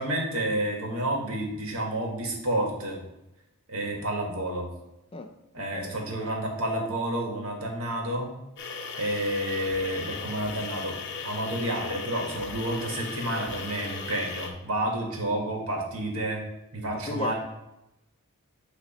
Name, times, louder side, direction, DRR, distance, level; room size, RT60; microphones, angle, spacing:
voice 1, 0.0-3.0 3.7-4.7 5.5-8.3 9.0-11.0 11.2-16.4 16.7-17.3, right 1 dB, 90° right, 0 dB, 1.7 m, -30 dB
voice 2, 5.1-5.9 16.9-17.3, left 3 dB, 25° left, 5 dB, 0.5 m, -36 dB
sound 1, 8.6-14.5, left 4 dB, 60° left, 0.8 m, -37 dB
8.8 x 3.1 x 4.2 m, 0.91 s
head